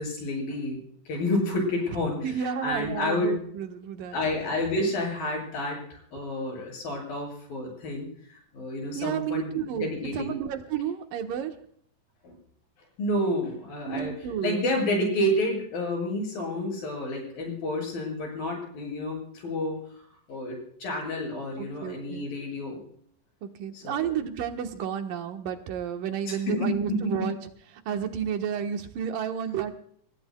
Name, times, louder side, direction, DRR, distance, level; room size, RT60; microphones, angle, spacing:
voice 1, 0.0-3.4 4.1-8.1 8.5-10.4 12.2-12.4 13.0-14.1 14.4-20.0 20.3-22.8 23.7-24.1 26.3-27.3, left 1 dB, 85° left, 0 dB, 9.1 m, -30 dB
voice 2, 2.2-4.2 8.9-11.6 13.9-14.6 21.6-22.3 23.4-27.4 27.7-29.7, right 8 dB, 75° right, 5 dB, 2.8 m, -31 dB
29.0 x 17.5 x 2.2 m, 0.63 s
omnidirectional pair, 4.0 m